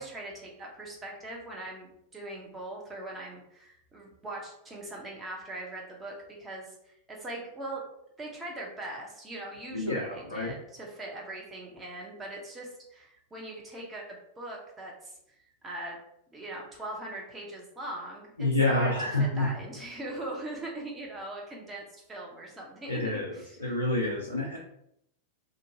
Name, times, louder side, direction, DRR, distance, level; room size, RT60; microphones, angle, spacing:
voice 1, 0.0-1.9 2.1-7.8 8.2-15.1 15.6-16.0 16.3-18.9 19.2-21.8 22.1-23.5, right 1 dB, 15° right, -2 dB, 0.8 m, -41 dB
voice 2, 9.7-10.5 18.4-19.5 22.9-24.6, left 2 dB, 80° left, -3 dB, 0.4 m, -28 dB
2.6 x 2.2 x 2.7 m, 0.76 s
figure-of-eight pair, 90°, 0 cm